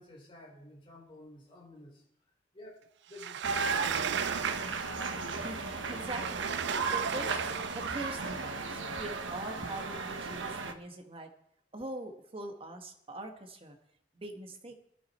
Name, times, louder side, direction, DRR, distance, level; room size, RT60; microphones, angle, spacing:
voice 1, 0.0-2.0 2.5-4.1, left 2 dB, 30° left, -1 dB, 3.9 m, -52 dB
Sliding door, 3.1-5.1 6.0-8.2, right 9 dB, 65° right, 0.4 m, -37 dB
sound 1, 3.4-10.7, right 4 dB, 85° right, 1.2 m, -35 dB
voice 2, 5.4-6.5 6.9-11.3 11.7-13.8 14.1-14.7, right 1 dB, 30° right, 4 dB, 1.5 m, -42 dB
19.5 x 10.5 x 4.4 m, 0.75 s
head